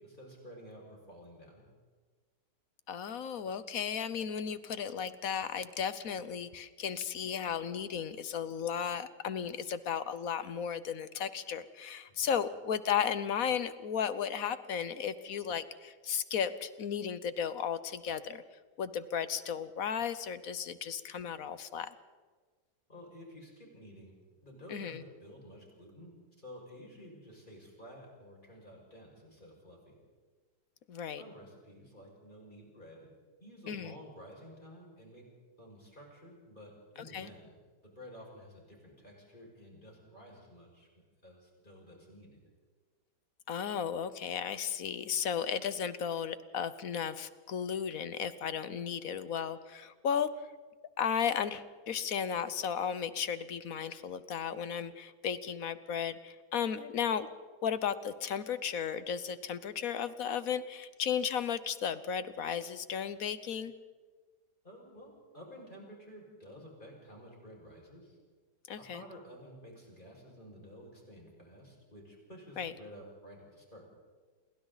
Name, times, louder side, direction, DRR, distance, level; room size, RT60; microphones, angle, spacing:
voice 1, 0.0-1.7 12.1-12.3 22.9-24.1 24.4-30.0 31.2-33.1 33.4-35.3 35.6-40.9 41.2-42.4 64.6-68.2 68.8-73.8, equal, 25° left, -2 dB, 6.2 m, -52 dB
voice 2, 2.9-18.4 18.8-21.9 24.7-25.0 30.9-31.2 33.7-33.9 37.1-37.3 43.5-50.3 51.0-57.3 57.6-63.7 68.7-69.0 72.6-72.7, left 8 dB, 60° left, 14 dB, 1.2 m, -34 dB
29.5 x 22.5 x 4.1 m, 1.4 s
omnidirectional pair, 1.8 m